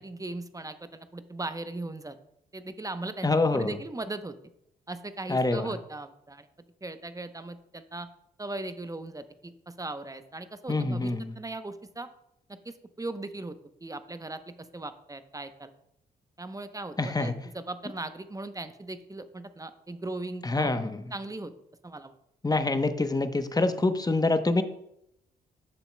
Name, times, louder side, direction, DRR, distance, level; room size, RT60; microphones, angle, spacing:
voice 1, 0.0-2.2 2.5-4.4 4.9-6.5 6.8-8.1 8.4-12.1 12.5-15.7 16.4-20.7 21.1-21.5 21.8-22.1, right 2 dB, 15° right, 11 dB, 0.7 m, -38 dB
voice 2, 3.2-3.8 5.3-5.7 10.7-11.3 17.0-17.3 20.4-21.0 22.4-24.6, left 2 dB, 20° left, 10 dB, 0.8 m, -26 dB
11.0 x 6.9 x 2.2 m, 0.76 s
hypercardioid pair, 45°, 21 cm